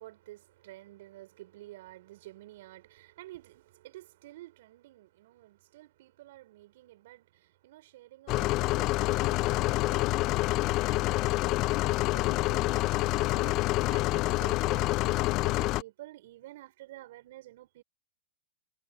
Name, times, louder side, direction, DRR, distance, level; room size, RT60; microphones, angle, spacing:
voice 1, 0.0-11.6 11.9-17.8, right 16 dB, 65° right, 4.7 m, -51 dB
sound 1, 8.3-15.8, left 19 dB, 45° left, 0.3 m, -27 dB
hypercardioid pair, 105°, 0 cm